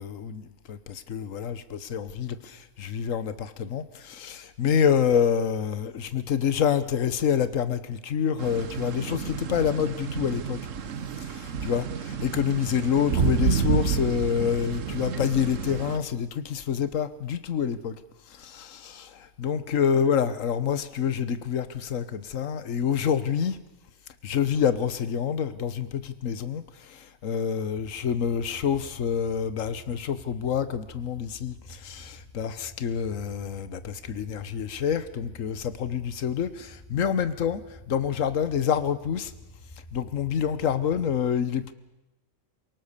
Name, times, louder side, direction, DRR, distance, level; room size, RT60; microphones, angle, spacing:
voice 1, 0.0-10.6 11.2-18.0 18.3-23.6 24.2-37.6 37.9-39.3 39.9-41.7, left 8 dB, 75° left, 1.5 m, -27 dB
sound 1, 8.4-16.0, right 6 dB, 70° right, 1.4 m, -29 dB
sound 2, 27.7-41.2, left 1 dB, 35° left, 7.6 m, -49 dB
28.0 x 18.5 x 6.8 m
omnidirectional pair, 1.4 m